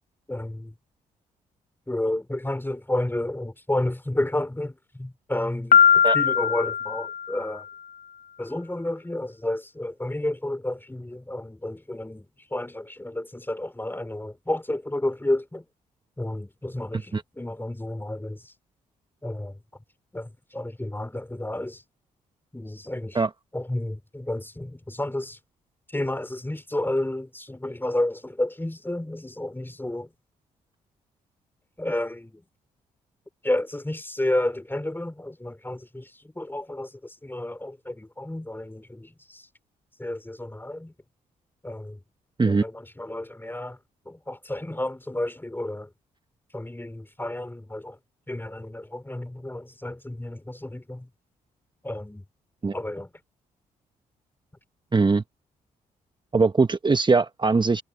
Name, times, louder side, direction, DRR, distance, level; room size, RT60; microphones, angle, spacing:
voice 1, 0.3-0.7 1.9-7.7 8.4-15.7 16.2-18.5 19.2-19.6 20.1-21.8 22.5-23.2 23.5-25.4 25.9-30.1 31.8-32.4 33.4-39.5 40.0-40.9 41.6-42.0 42.5-43.8 44.1-45.9 46.5-48.0 48.3-51.1 51.8-52.2 52.7-53.1, left 1 dB, 10° left, 3.9 m, -31 dB
Piano, 5.7-7.6, left 8 dB, 55° left, 0.6 m, -20 dB
voice 2, 54.9-55.2 56.3-57.8, right 4 dB, 25° right, 1.1 m, -21 dB
hypercardioid pair, 45°, 17 cm